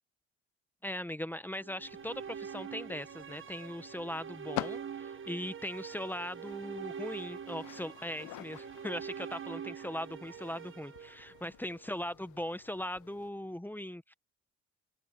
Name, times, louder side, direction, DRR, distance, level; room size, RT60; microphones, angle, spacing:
voice 1, 0.8-14.1, left 1 dB, 5° left, 1.2 m, -39 dB
sound 1, 1.6-11.8, right 7 dB, 40° right, 1.3 m, -44 dB
sound 2, 1.8-13.3, left 20 dB, 70° left, 0.6 m, -48 dB
hypercardioid pair, 60°, 31 cm